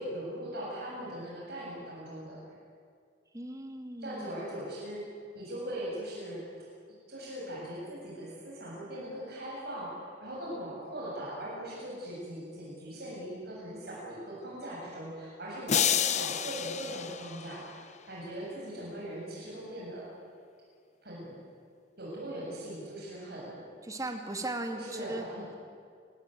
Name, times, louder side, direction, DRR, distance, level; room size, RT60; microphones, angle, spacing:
voice 1, 0.0-2.4 4.0-5.0 5.3-6.4 7.1-17.7 18.0-20.1 21.0-21.4 22.0-23.6 24.7-25.5, right 1 dB, 55° right, -5 dB, 7.5 m, -40 dB
voice 2, 3.3-4.3 23.8-25.2, right 2 dB, 20° right, 5 dB, 2.4 m, -37 dB
sound 1, 15.7-18.0, left 9 dB, 40° left, 0.8 m, -30 dB
27.0 x 20.5 x 9.3 m, 2.2 s
head